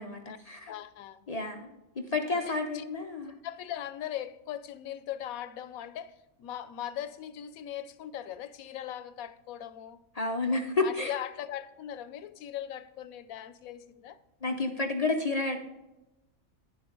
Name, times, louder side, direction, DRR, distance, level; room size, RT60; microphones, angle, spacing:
voice 1, 0.0-0.7 1.3-1.7 2.0-3.3 10.1-11.1 14.4-15.6, left 3 dB, 40° left, 0.6 m, -30 dB
voice 2, 0.7-1.3 2.3-2.9 3.3-10.0 10.8-14.2, left 11 dB, 90° left, 1.0 m, -40 dB
10.0 x 7.0 x 3.8 m
omnidirectional pair, 1.4 m